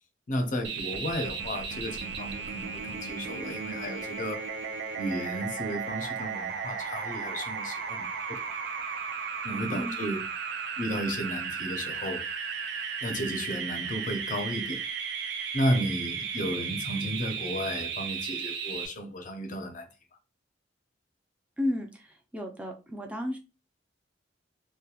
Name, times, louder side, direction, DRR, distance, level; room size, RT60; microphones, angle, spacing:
voice 1, 0.3-4.5 5.0-8.4 9.4-10.2 10.8-12.3 13.0-14.8 15.5-19.9, equal, 45° left, 0.5 m, -33 dB
sound 1, 0.6-18.9, right 6 dB, 65° right, 0.4 m, -35 dB
voice 2, 21.6-22.1 22.3-23.4, left 1 dB, 5° right, 0.4 m, -32 dB
2.8 x 2.2 x 2.3 m
head